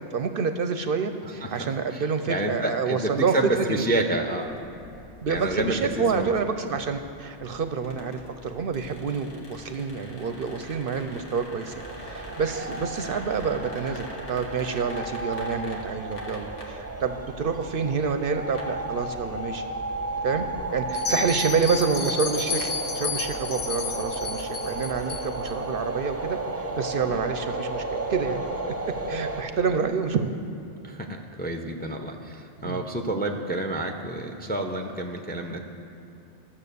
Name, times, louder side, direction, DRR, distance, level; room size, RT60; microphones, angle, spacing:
voice 1, 0.1-3.9 5.2-19.6 20.2-20.5 20.7-28.4 29.1-30.4 32.6-32.8, right 5 dB, 60° right, 8 dB, 0.7 m, -28 dB
voice 2, 1.2-4.5 5.3-6.3 12.4-12.5 13.9-14.0 21.1-21.4 27.1-27.2 30.8-35.6, right 1 dB, 10° left, 4 dB, 0.5 m, -29 dB
sound 1, 4.4-21.3, left 1 dB, 85° left, 1.9 m, -45 dB
sound 2, 11.8-29.4, right 2 dB, 15° right, 0.8 m, -33 dB
Bell, 20.9-25.5, left 5 dB, 55° left, 0.9 m, -32 dB
13.5 x 7.2 x 6.8 m, 2.7 s
omnidirectional pair, 1.2 m